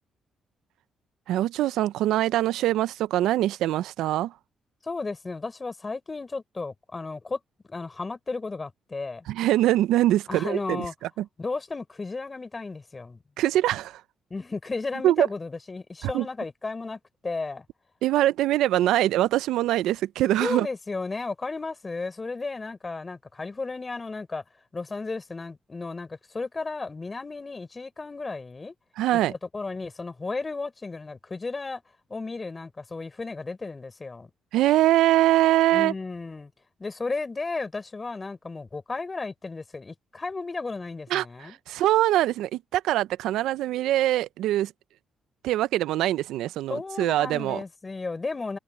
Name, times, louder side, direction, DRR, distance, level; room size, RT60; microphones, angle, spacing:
voice 1, 1.3-4.3 9.3-10.8 11.2-11.3 13.4-14.0 15.0-15.3 16.0-16.3 18.0-20.7 29.0-29.3 34.5-35.9 41.1-41.2 41.7-44.7 45.4-47.6, right 14 dB, 85° right, 0.5 m, -23 dB
voice 2, 4.8-9.2 10.3-10.9 11.4-13.2 14.3-17.6 20.4-24.4 24.7-28.7 29.1-31.8 32.1-34.3 35.7-36.5 36.8-41.6 46.7-48.6, left 3 dB, 25° left, 4.9 m, -34 dB
cardioid pair, 90°, 0 cm